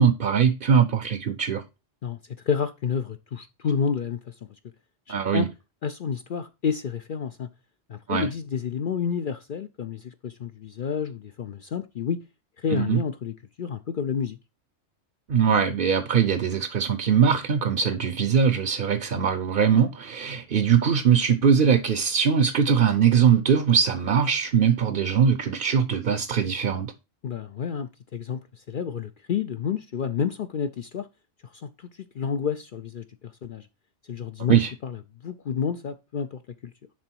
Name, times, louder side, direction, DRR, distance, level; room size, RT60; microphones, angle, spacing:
voice 1, 0.0-1.6 5.1-5.4 8.1-8.3 12.7-13.0 15.3-26.9 34.5-34.7, right 7 dB, 50° right, 0.8 m, -21 dB
voice 2, 2.4-4.3 5.1-5.5 5.8-7.5 7.9-12.2 12.6-14.4 27.2-31.1 31.5-31.9 32.1-33.7 34.1-36.7, left 7 dB, 55° left, 0.6 m, -30 dB
10.5 x 3.9 x 4.5 m
omnidirectional pair, 1.3 m